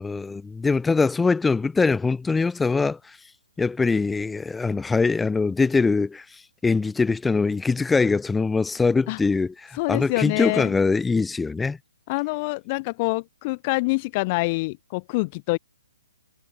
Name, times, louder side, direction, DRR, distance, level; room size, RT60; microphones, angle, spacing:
voice 1, 0.0-3.2 3.6-6.2 6.6-11.8, left 4 dB, 5° left, 1.5 m, -22 dB
voice 2, 9.7-10.7 12.1-15.6, left 25 dB, 35° left, 0.8 m, -26 dB
figure-of-eight pair, 135°, 0 cm